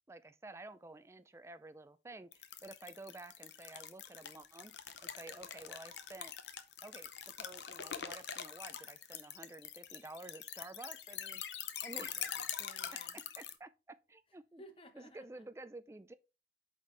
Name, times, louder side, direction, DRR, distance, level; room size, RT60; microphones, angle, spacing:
voice 1, 0.1-4.7 5.2-6.4 6.8-11.4 11.8-12.1 13.4-14.6 14.9-16.1, right 2 dB, 15° right, 0.4 m, -51 dB
sound 1, 2.3-13.6, left 9 dB, 85° left, 0.7 m, -44 dB
voice 2, 5.3-5.6 11.9-13.2 14.6-15.5, left 1 dB, 30° left, 0.9 m, -58 dB
8.3 x 4.3 x 3.3 m
head